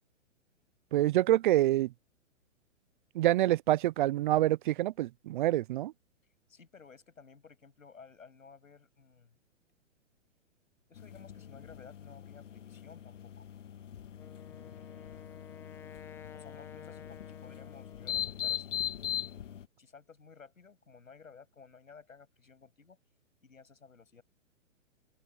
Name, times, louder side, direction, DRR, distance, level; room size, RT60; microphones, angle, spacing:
voice 1, 0.9-1.9 3.2-5.9, right 15 dB, 40° right, 0.6 m, -26 dB
voice 2, 6.5-9.4 10.9-13.5 14.5-15.4 16.3-18.7 19.8-23.0 23.4-24.2, left 5 dB, 90° left, 7.5 m, -55 dB
sound 1, 10.9-19.7, left 11 dB, 65° left, 2.1 m, -40 dB
Wind instrument woodwind instrument, 14.1-18.4, left 8 dB, 5° left, 0.4 m, -52 dB
open air
hypercardioid pair, 130°, 39 cm